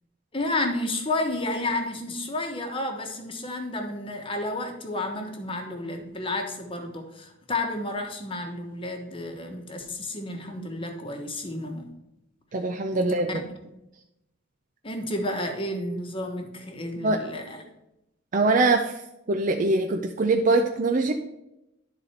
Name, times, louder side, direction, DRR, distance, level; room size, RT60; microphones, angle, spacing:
voice 1, 0.3-11.9 12.9-13.4 14.8-17.6, left 2 dB, 25° left, 4 dB, 1.1 m, -31 dB
voice 2, 12.5-13.3 17.0-17.2 18.3-18.9 19.3-21.1, right 3 dB, 40° right, 4 dB, 0.5 m, -22 dB
11.5 x 4.1 x 4.3 m, 0.89 s
head